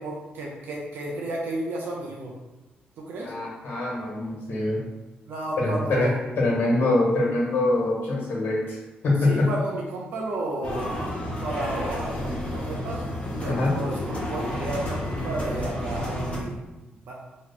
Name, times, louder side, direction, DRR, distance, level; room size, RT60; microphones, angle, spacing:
voice 1, 0.0-2.4 3.0-3.3 5.3-6.2 9.2-11.0 11.3-16.6 17.1-17.2, right 2 dB, 80° right, -2 dB, 0.5 m, -32 dB
voice 2, 3.2-4.8 5.6-8.8 9.0-9.5 13.4-13.8, left 2 dB, 70° left, -3 dB, 1.1 m, -24 dB
sound 1, 10.6-16.4, left 1 dB, 35° left, 1.0 m, -31 dB
2.9 x 2.0 x 4.0 m, 1.1 s
cardioid pair, 95°, 4 cm